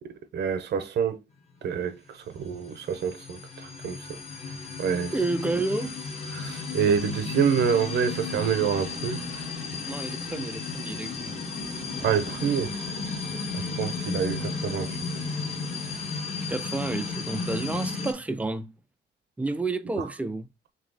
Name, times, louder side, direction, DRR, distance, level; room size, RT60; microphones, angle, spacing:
voice 1, 0.0-1.2 1.6-4.2 4.8-5.1 6.3-9.4 12.0-12.7 13.5-15.0 20.0-20.1, right 7 dB, 60° right, 0.7 m, -27 dB
sound 1, 2.4-18.1, left 4 dB, 35° left, 0.9 m, -34 dB
voice 2, 5.1-6.0 9.9-11.4 16.5-18.7 19.4-20.5, right 2 dB, 5° right, 0.4 m, -30 dB
sound 2, 5.2-15.2, left 5 dB, 80° left, 1.7 m, -54 dB
3.1 x 2.8 x 3.9 m
cardioid pair, 90°, 20 cm